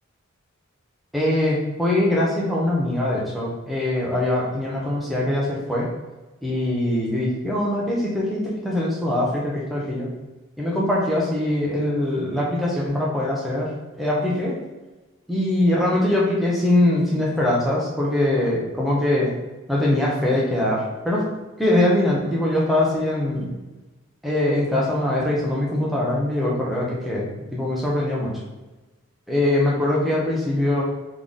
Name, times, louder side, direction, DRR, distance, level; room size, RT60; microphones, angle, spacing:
voice 1, 1.1-5.9 6.4-10.1 10.6-13.7 14.0-14.6 15.3-19.3 19.7-21.2 21.6-23.5 24.2-28.3 29.3-30.8, left 1 dB, ahead, -5 dB, 0.9 m, -22 dB
3.9 x 3.3 x 3.7 m, 1.1 s
head